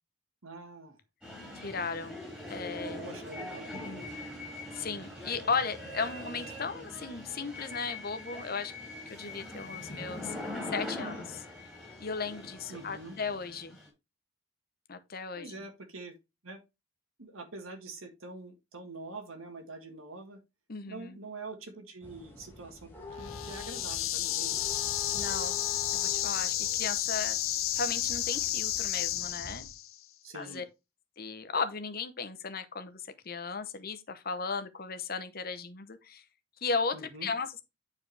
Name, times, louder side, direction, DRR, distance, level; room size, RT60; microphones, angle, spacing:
voice 1, 0.4-1.0 3.0-3.9 12.7-13.2 15.4-16.2 16.4-16.6 17.2-20.4 20.9-22.9 23.2-24.7 30.2-30.6 36.9-37.3, right 3 dB, 80° right, 1.7 m, -45 dB
sound 1, 1.2-13.9, left 1 dB, 5° right, 3.4 m, -42 dB
voice 2, 1.6-2.2 2.5-3.2 3.7-4.1 4.7-8.7 9.1-10.3 10.7-11.4 12.0-13.8 14.9-15.7 20.7-21.2 25.1-25.6 25.9-27.4 27.7-29.7 30.3-30.6 31.2-36.2 36.6-37.6, left 4 dB, 45° left, 0.8 m, -36 dB
sound 2, 22.0-29.7, left 3 dB, 10° left, 1.8 m, -46 dB
sound 3, 23.2-29.9, left 13 dB, 85° left, 0.6 m, -32 dB
8.8 x 4.8 x 3.3 m
head